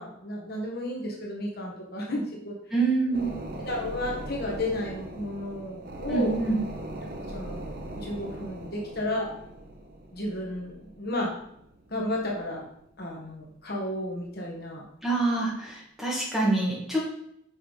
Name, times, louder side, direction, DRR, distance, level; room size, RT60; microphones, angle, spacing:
voice 1, 0.0-2.6 3.1-3.3 3.6-6.4 7.3-9.3 10.1-11.3 11.9-12.7 13.0-14.8, left 1 dB, 50° left, -2 dB, 1.5 m, -33 dB
voice 2, 2.7-3.3 6.1-6.6 15.0-17.0, right 3 dB, ahead, -6 dB, 2.2 m, -26 dB
sound 1, 3.1-13.1 13.5-13.6, right 1 dB, 45° right, 0.9 m, -40 dB
6.1 x 5.5 x 5.4 m, 0.75 s
head